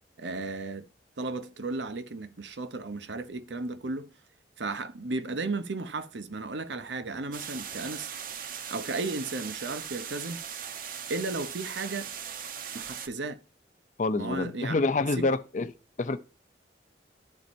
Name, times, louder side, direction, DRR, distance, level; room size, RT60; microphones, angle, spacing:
voice 1, 0.2-0.9 1.2-4.1 4.6-8.1 8.7-10.4 11.1-12.1 12.7-13.4 14.2-14.8 15.0-15.4, right 3 dB, 85° right, 0.8 m, -34 dB
sound 1, 7.3-13.1, right 8 dB, 50° right, 0.7 m, -39 dB
voice 2, 14.0-15.7 16.0-16.2, left 3 dB, 45° left, 0.6 m, -27 dB
11.5 x 4.2 x 2.6 m
head